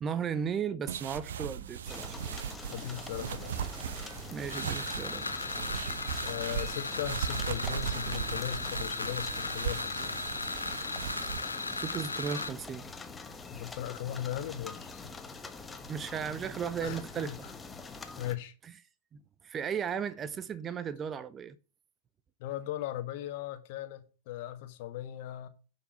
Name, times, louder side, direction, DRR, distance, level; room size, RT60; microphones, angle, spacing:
voice 1, 0.0-2.2 4.3-5.3 11.3-11.4 11.8-12.9 15.9-17.3 19.1-21.6, right 7 dB, 25° right, 0.7 m, -35 dB
sound 1, 0.9-11.4, right 9 dB, 65° right, 0.7 m, -38 dB
sound 2, 1.9-18.3, left 3 dB, 15° left, 1.3 m, -45 dB
voice 2, 2.7-3.6 6.2-10.2 13.5-15.0 16.8-17.5 18.2-18.5 22.4-25.5, left 12 dB, 50° left, 1.5 m, -38 dB
sound 3, 4.5-12.5, left 3 dB, 80° left, 0.9 m, -36 dB
10.0 x 5.9 x 5.7 m
figure-of-eight pair, 90°, 0 cm